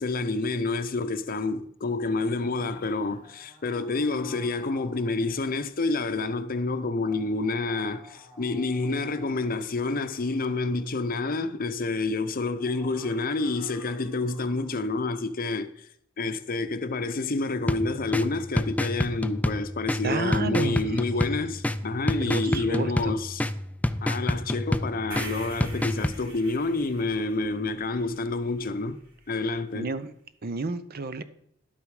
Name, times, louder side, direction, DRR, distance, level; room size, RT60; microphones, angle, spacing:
voice 1, 0.0-15.9 16.2-23.4 24.0-29.0 29.3-29.9, left 3 dB, 45° left, 0.7 m, -28 dB
sound 1, 1.9-5.8 6.7-11.0 12.4-14.9, equal, 25° right, 3.0 m, -52 dB
sound 2, 17.7-26.2, left 1 dB, 10° left, 0.4 m, -29 dB
voice 2, 20.0-21.0 22.2-23.1 29.7-30.1 30.4-31.2, right 3 dB, 50° right, 0.7 m, -31 dB
sound 3, 25.1-29.2, right 2 dB, 75° right, 4.0 m, -44 dB
11.5 x 8.5 x 4.8 m
head